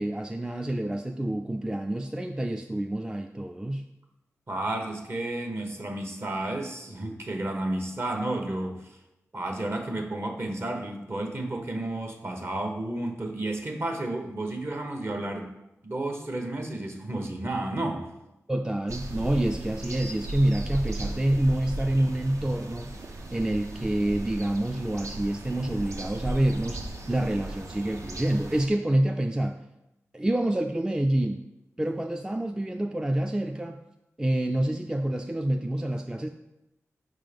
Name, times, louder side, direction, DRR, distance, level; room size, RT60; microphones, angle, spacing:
voice 1, 0.0-3.8 18.5-23.0 23.3-29.6 30.1-31.4 31.8-33.8 34.2-36.3, right 1 dB, 10° right, 4 dB, 0.3 m, -27 dB
voice 2, 4.5-8.9 9.3-15.5 15.8-18.1, right 1 dB, 45° right, 3 dB, 1.1 m, -32 dB
sound 1, 18.9-28.7, right 1 dB, 65° right, 0.7 m, -36 dB
5.0 x 3.7 x 5.1 m, 0.92 s
cardioid pair, 45°, 6 cm